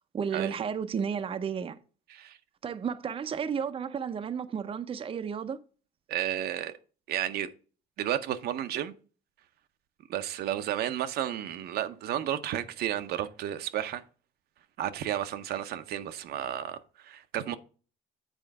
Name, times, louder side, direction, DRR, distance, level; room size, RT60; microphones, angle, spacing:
voice 1, 0.1-1.8 2.6-5.6, right 7 dB, 35° right, 0.6 m, -32 dB
voice 2, 6.1-6.7 7.1-7.5 8.0-8.9 10.1-14.0 14.8-17.6, right 11 dB, 70° right, 0.7 m, -32 dB
7.8 x 4.4 x 4.7 m
cardioid pair, 110°, 17 cm